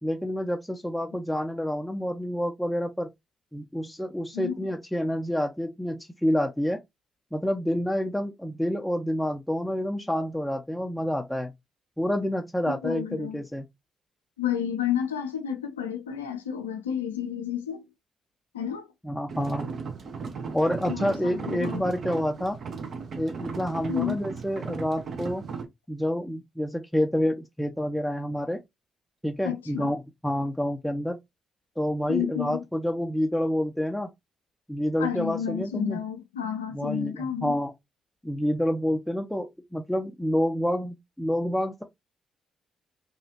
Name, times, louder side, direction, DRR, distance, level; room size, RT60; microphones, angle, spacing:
voice 1, 0.0-3.1 3.5-6.8 7.3-11.5 12.0-13.7 19.0-19.7 20.5-22.6 23.2-25.4 25.9-28.6 29.2-31.2 31.8-34.1 34.7-36.0 36.7-37.7 38.2-41.8, equal, 5° left, 0.5 m, -28 dB
voice 2, 4.3-4.7 12.7-13.4 14.4-17.8 18.5-18.9 20.9-22.0 23.9-24.2 29.4-29.9 32.1-32.6 35.0-37.5, left 9 dB, 90° left, 0.4 m, -31 dB
sound 1, 19.3-25.7, right 5 dB, 55° right, 0.7 m, -36 dB
2.9 x 2.4 x 2.8 m
hypercardioid pair, 40°, 0 cm